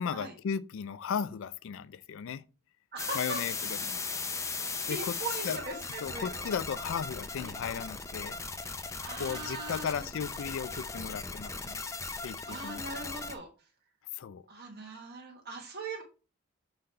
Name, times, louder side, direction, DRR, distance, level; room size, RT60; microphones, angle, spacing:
voice 1, 0.0-2.4 3.1-4.0 4.9-5.1 5.4-5.6 6.0-8.4 9.2-11.9 12.2-12.8 14.1-14.4, left 7 dB, 65° left, 0.4 m, -36 dB
voice 2, 2.9-3.4 4.5-6.5 7.4-7.5 9.0-10.1 12.5-13.7 14.5-16.0, right 3 dB, 50° right, 1.1 m, -40 dB
sound 1, 3.0-13.4, left 4 dB, 15° left, 0.5 m, -38 dB
6.7 x 4.0 x 4.3 m
head